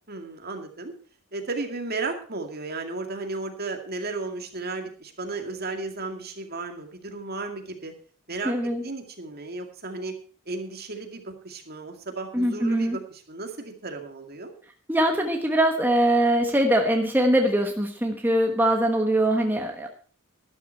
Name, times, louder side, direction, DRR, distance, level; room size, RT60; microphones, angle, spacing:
voice 1, 0.1-0.9 1.3-7.9 8.3-10.1 10.5-14.5, right 3 dB, 50° right, 4 dB, 2.2 m, -34 dB
voice 2, 8.4-8.8 12.3-13.0 14.9-19.9, right 1 dB, 10° right, 3 dB, 1.2 m, -22 dB
12.5 x 12.0 x 4.5 m, 0.39 s
head